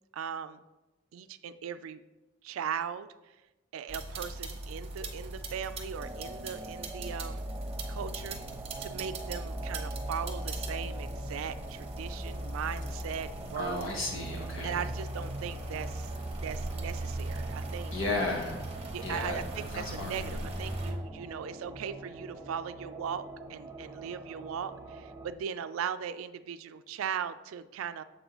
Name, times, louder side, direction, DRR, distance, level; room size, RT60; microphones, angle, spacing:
voice 1, 0.1-0.6 1.1-2.0 2.4-3.1 3.7-7.5 7.9-8.4 8.8-14.2 14.6-16.1 16.4-17.9 18.9-28.0, right 8 dB, 85° right, 13 dB, 0.3 m, -38 dB
sound 1, 3.9-20.9, right 1 dB, 30° right, 0.8 m, -38 dB
sound 2, 6.0-25.3, right 2 dB, 15° right, 0.4 m, -45 dB
voice 2, 13.5-14.8 17.9-18.6 19.0-19.4 19.7-20.2, left 2 dB, 70° left, 0 dB, 1.4 m, -33 dB
7.1 x 5.3 x 3.0 m, 1.1 s
head